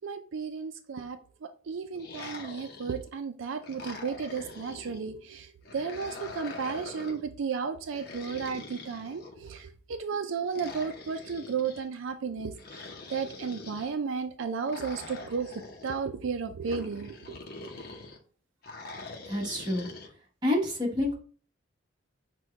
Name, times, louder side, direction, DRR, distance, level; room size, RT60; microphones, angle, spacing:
voice 1, 0.0-1.2 1.7-12.8 13.1-15.5 15.8-17.2, right 5 dB, 80° right, 0.4 m, -33 dB
sound 1, 1.9-3.1 3.6-5.0 5.6-7.3 7.9-9.6 10.5-11.8 12.6-13.9 14.7-16.0 16.6-18.2 18.6-20.1, left 3 dB, 50° left, 0.7 m, -44 dB
voice 2, 19.2-19.9 20.4-21.1, left 1 dB, 20° right, 1.3 m, -28 dB
6.1 x 2.3 x 3.4 m
head